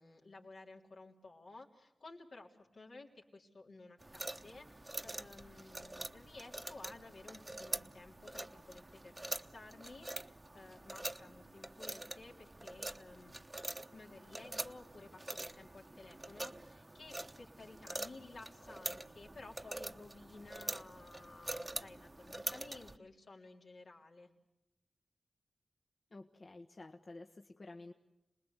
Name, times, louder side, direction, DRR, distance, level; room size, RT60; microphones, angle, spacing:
voice 1, 0.0-13.3 13.9-24.3, left 3 dB, 80° left, -1 dB, 3.5 m, -55 dB
sound 1, 4.0-23.0, right 1 dB, 25° right, 0.9 m, -45 dB
voice 2, 26.1-27.9, left 2 dB, 55° left, 4 dB, 1.2 m, -51 dB
27.5 x 20.0 x 8.2 m, 0.95 s
cardioid pair, 50°, 0 cm